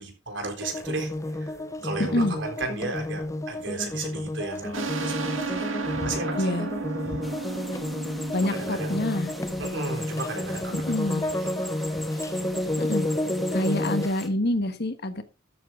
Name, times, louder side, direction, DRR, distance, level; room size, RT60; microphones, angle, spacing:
voice 1, 0.0-1.5 1.8-5.1 5.5-5.7 6.0-6.6 8.3-9.0 9.6-11.7, right 3 dB, 65° right, 4 dB, 4.2 m, -35 dB
sound 1, 0.6-14.1, left 1 dB, 15° left, 0.7 m, -31 dB
voice 2, 2.0-2.4 5.2-5.3 6.0-6.1 6.4-6.7 7.0-7.2 8.3-9.3 10.7-11.2 12.8-13.1 13.5-15.2, left 1 dB, 55° left, 10 dB, 1.5 m, -27 dB
sound 2, 4.7-10.0, right 4 dB, 85° right, 2.1 m, -33 dB
sound 3, 7.2-14.3, equal, ahead, 1.9 m, -43 dB
13.0 x 8.6 x 3.7 m, 0.30 s
head